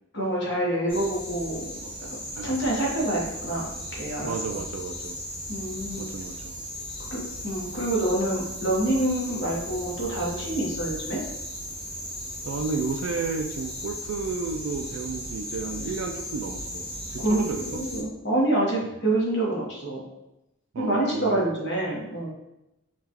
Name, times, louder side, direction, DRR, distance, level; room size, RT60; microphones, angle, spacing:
voice 1, 0.1-1.6 2.4-4.6 5.5-6.1 7.0-11.2 17.2-20.0 20.8-22.3, right 1 dB, 55° left, -4 dB, 1.2 m, -27 dB
sound 1, 0.9-18.0, left 1 dB, 25° left, 1.3 m, -36 dB
voice 2, 4.2-5.2 6.0-6.6 9.3-9.4 12.4-16.9 17.1-17.8 20.7-21.5, right 4 dB, 65° right, 4 dB, 0.3 m, -32 dB
5.6 x 2.4 x 2.9 m, 0.91 s
head